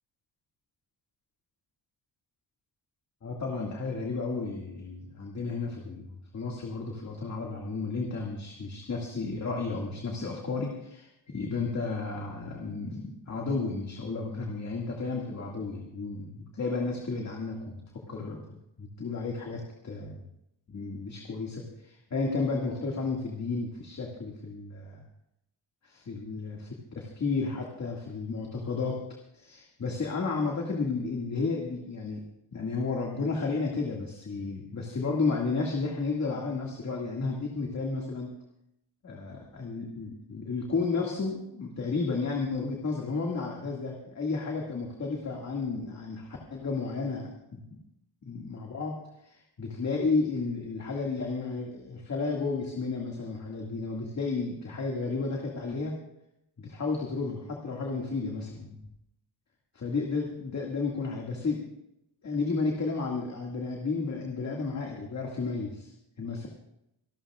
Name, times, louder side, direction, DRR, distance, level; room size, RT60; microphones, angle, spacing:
voice 1, 3.2-6.1 6.3-20.2 20.7-25.0 25.8-29.0 29.3-32.2 32.5-38.3 39.0-47.8 48.3-49.0 49.2-55.9 56.6-58.8 59.7-61.6 62.2-66.5, left 4 dB, 35° left, -1 dB, 2.1 m, -32 dB
26.5 x 12.5 x 2.4 m, 0.83 s
wide cardioid pair, 165°, 46 cm